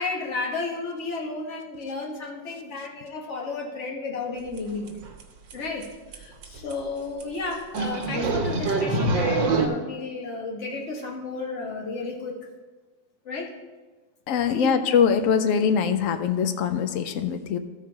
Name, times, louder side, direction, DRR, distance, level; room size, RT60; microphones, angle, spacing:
voice 1, 0.0-4.9 5.5-12.4 13.2-13.5 14.5-14.8, left 3 dB, 40° left, -1 dB, 1.5 m, -33 dB
sound 1, 4.6-4.7 4.9-5.2 5.5-5.6 5.8-5.9 6.1-6.2 6.4-6.7 7.2-7.3 7.7-9.7, right 3 dB, 85° right, 1.7 m, -24 dB
voice 2, 14.3-17.6, left 7 dB, 70° left, 9 dB, 0.7 m, -23 dB
13.0 x 4.7 x 4.6 m, 1.3 s
omnidirectional pair, 2.0 m